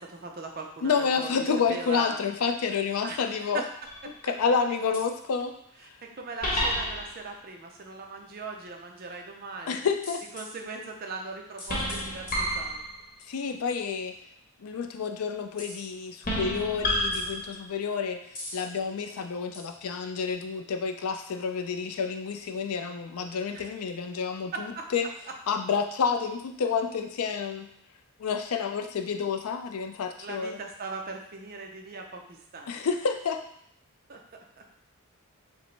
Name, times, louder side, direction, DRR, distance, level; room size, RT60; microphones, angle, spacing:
voice 1, 0.0-2.2 3.0-3.7 4.7-4.8 5.8-9.8 10.3-12.8 23.5-23.8 24.5-24.9 30.2-32.8 34.1-34.2 34.6-34.7, right 3 dB, 40° right, 2 dB, 0.5 m, -39 dB
voice 2, 0.8-3.6 4.2-5.5 9.7-10.2 13.3-14.1 14.6-18.2 18.5-24.5 24.9-25.1 25.5-27.7 28.2-30.6 32.7-33.4, left 5 dB, 80° left, 6 dB, 0.4 m, -29 dB
sound 1, 3.8-4.3 4.9-5.0 6.4-7.3 10.0-10.5 11.6-13.2 15.6-15.9 16.2-17.8 18.3-18.6 19.5-19.6, equal, 40° left, 1.0 m, -30 dB
5.0 x 2.1 x 3.2 m, 0.71 s
head